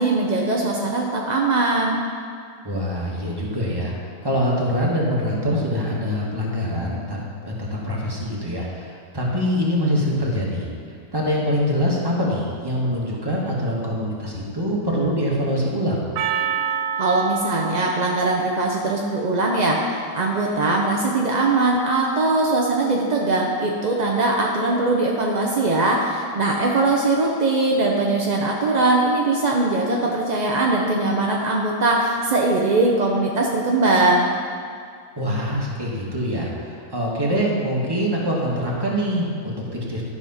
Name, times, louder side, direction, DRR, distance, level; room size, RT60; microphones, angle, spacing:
voice 1, 0.0-2.0 17.0-34.3, right 2 dB, 50° right, -1 dB, 0.5 m, -21 dB
voice 2, 2.6-3.9 4.2-10.7 11.1-16.0 35.1-40.0, equal, 15° right, -4 dB, 1.5 m, -24 dB
Percussion, 16.2-20.6, right 7 dB, 80° right, 1.1 m, -30 dB
12.5 x 4.9 x 5.7 m, 2.2 s
omnidirectional pair, 1.8 m